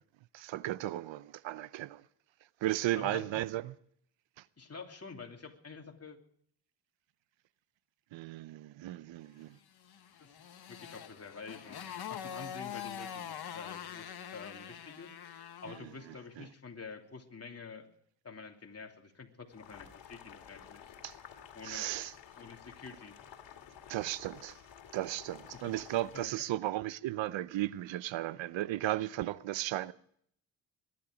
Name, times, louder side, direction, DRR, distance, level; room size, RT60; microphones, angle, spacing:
voice 1, 0.3-2.0 2.6-3.7 8.1-9.6 16.4-16.5 21.0-21.1 21.6-22.1 23.9-24.5 24.9-29.9, right 15 dB, 80° right, 0.7 m, -35 dB
voice 2, 3.0-3.4 4.6-6.2 10.2-10.3 10.7-11.8 12.1-17.9 18.2-20.9 21.5-21.9 22.4-23.2 25.5-25.8 26.1-26.3, left 4 dB, 35° left, 3.0 m, -48 dB
Motorcycle, 9.8-15.9, left 9 dB, 55° left, 1.4 m, -44 dB
Boiling, 19.5-26.3, left 9 dB, 75° left, 2.4 m, -53 dB
22.0 x 11.5 x 5.1 m
cardioid pair, 70°, 44 cm